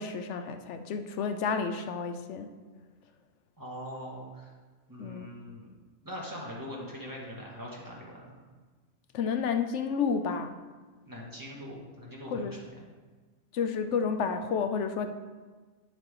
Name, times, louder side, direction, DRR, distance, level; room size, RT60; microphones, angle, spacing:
voice 1, 0.0-2.5 5.0-5.3 9.1-10.6 12.3-12.6 13.5-15.1, left 6 dB, 85° left, 8 dB, 1.0 m, -31 dB
voice 2, 3.6-4.5 4.9-5.7 6.0-8.3 11.1-12.8, equal, 15° right, -4 dB, 1.9 m, -42 dB
10.5 x 7.3 x 3.8 m, 1.4 s
omnidirectional pair, 1.2 m